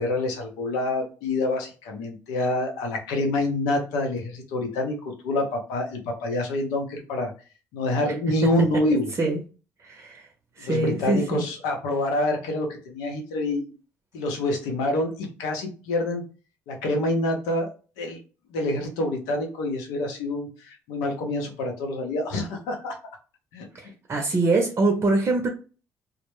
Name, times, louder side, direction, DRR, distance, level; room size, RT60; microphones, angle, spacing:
voice 1, 0.0-7.3 7.7-9.1 10.6-13.6 14.1-16.2 16.7-17.7 18.0-18.2 18.5-23.0 23.5-23.7, left 2 dB, 80° left, 0.6 m, -27 dB
voice 2, 9.8-10.2 10.6-11.4 24.1-25.5, right 2 dB, 40° right, 0.6 m, -23 dB
2.0 x 2.0 x 3.0 m
hypercardioid pair, 60°, 6 cm